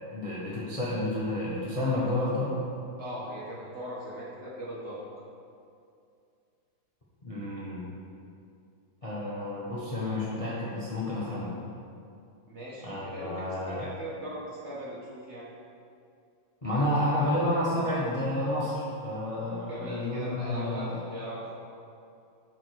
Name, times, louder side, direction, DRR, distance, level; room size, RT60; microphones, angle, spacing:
voice 1, 0.1-2.6 7.2-7.8 9.0-11.5 12.8-13.8 16.6-21.0, left 1 dB, 20° left, -7 dB, 1.1 m, -30 dB
voice 2, 3.0-5.0 12.5-15.5 19.7-21.6, right 1 dB, 35° right, -6 dB, 1.6 m, -39 dB
10.5 x 5.0 x 4.8 m, 2.4 s
omnidirectional pair, 2.3 m